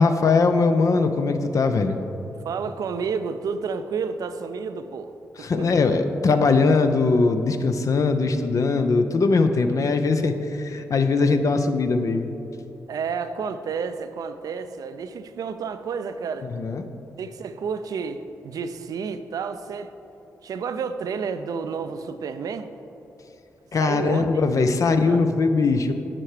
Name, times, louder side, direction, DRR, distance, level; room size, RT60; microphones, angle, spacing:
voice 1, 0.0-2.0 5.4-12.3 16.4-16.9 23.7-25.9, left 4 dB, 60° left, 8 dB, 0.6 m, -21 dB
voice 2, 2.4-5.1 5.4-5.7 12.9-16.5 17.2-19.9 20.4-22.7 23.8-25.3, right 5 dB, 75° right, 10 dB, 0.4 m, -31 dB
10.0 x 4.6 x 4.9 m, 2.9 s
supercardioid pair, 45°, 6 cm